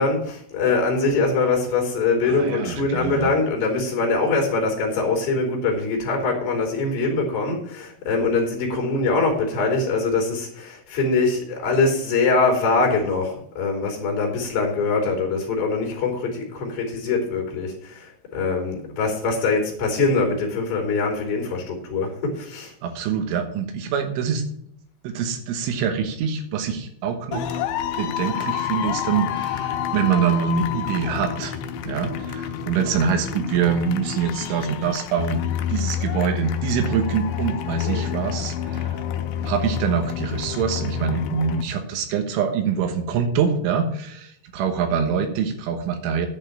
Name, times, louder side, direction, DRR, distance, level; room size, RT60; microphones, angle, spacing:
voice 1, 0.0-22.7 37.8-38.0, left 3 dB, 45° left, 1 dB, 4.0 m, -23 dB
voice 2, 2.2-3.3 22.8-24.4 25.0-27.7 28.0-31.6 31.9-35.4 35.7-39.0 39.4-46.3, right 7 dB, 80° right, 6 dB, 3.6 m, -25 dB
sound 1, 27.3-41.6, left 9 dB, 80° left, 2.9 m, -28 dB
10.5 x 5.5 x 8.4 m, 0.68 s
omnidirectional pair, 5.7 m